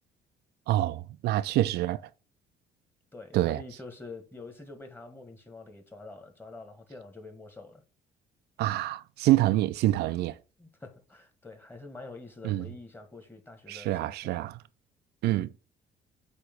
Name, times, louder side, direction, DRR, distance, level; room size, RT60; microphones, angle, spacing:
voice 1, 0.7-2.0 3.3-3.6 8.6-10.3 12.4-12.7 13.7-14.5 15.2-15.5, right 15 dB, 75° right, 0.5 m, -26 dB
voice 2, 3.1-7.8 10.6-14.4, left 3 dB, 10° left, 1.8 m, -46 dB
8.3 x 3.1 x 6.0 m
cardioid pair, 110°, 17 cm